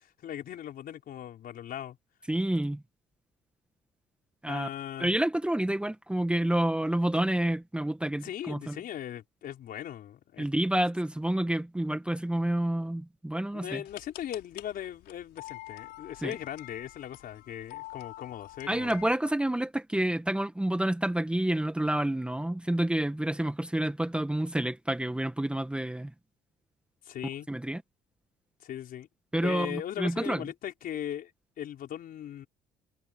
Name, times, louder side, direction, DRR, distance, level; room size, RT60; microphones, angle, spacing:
voice 1, 0.2-2.0 4.5-5.1 8.2-10.4 13.5-19.0 27.0-27.5 28.6-29.1 29.4-31.3 31.6-32.5, left 10 dB, 60° left, 5.0 m, -38 dB
voice 2, 2.3-2.8 4.4-4.7 5.0-8.8 10.4-13.8 16.2-16.3 18.7-26.1 27.5-27.8 29.3-30.4, right 1 dB, 5° right, 1.4 m, -29 dB
sound 1, 13.8-19.2, left 18 dB, 90° left, 5.1 m, -47 dB
cardioid pair, 110°, 17 cm